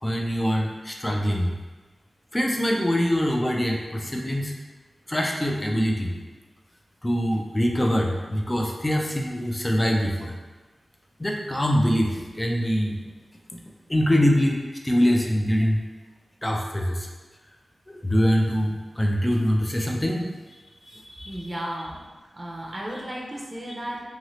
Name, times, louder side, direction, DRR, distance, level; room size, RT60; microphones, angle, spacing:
voice 1, 0.0-1.6 2.3-4.5 5.1-6.1 7.0-10.3 11.2-13.0 13.5-13.6 13.9-15.8 16.4-17.1 17.9-20.4 20.8-21.5, equal, 20° left, 0 dB, 0.5 m, -24 dB
voice 2, 21.2-22.0 22.3-24.0, right 1 dB, 30° right, -3 dB, 0.6 m, -34 dB
2.9 x 2.7 x 3.1 m, 1.3 s
cardioid pair, 50°, 0 cm